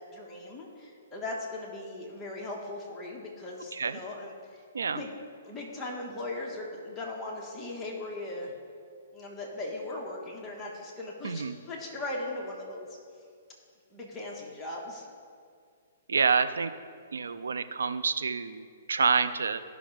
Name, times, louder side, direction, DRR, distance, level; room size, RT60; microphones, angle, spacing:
voice 1, 0.1-4.6 4.9-5.1 5.4-8.6 9.1-12.9 13.9-15.1, left 2 dB, 10° left, -4 dB, 1.6 m, -38 dB
voice 2, 11.2-11.6 16.1-16.7 17.1-19.6, right 5 dB, 90° right, 11 dB, 0.5 m, -28 dB
15.0 x 6.1 x 3.5 m, 2.1 s
hypercardioid pair, 150°, 0 cm